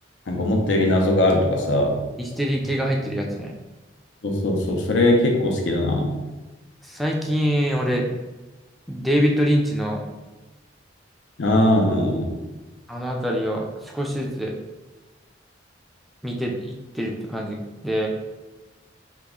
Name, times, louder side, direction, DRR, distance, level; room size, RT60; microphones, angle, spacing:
voice 1, 0.3-2.0 4.2-6.1 11.4-12.3, left 1 dB, 75° left, 1 dB, 0.6 m, -20 dB
voice 2, 2.2-3.5 6.9-8.1 8.9-10.0 12.9-14.5 16.2-18.1, equal, ahead, -1 dB, 0.3 m, -24 dB
2.9 x 2.3 x 3.6 m, 1.1 s
head